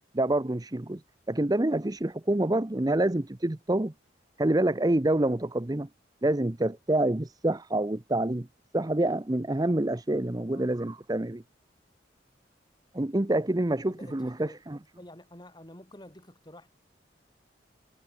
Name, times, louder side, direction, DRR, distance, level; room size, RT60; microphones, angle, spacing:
voice 1, 0.1-1.0 1.3-3.9 4.4-5.9 6.2-8.5 8.7-11.4 12.9-14.8, right 1 dB, 20° right, 0.7 m, -27 dB
voice 2, 13.9-14.6 15.0-16.7, left 1 dB, 25° left, 6.6 m, -49 dB
head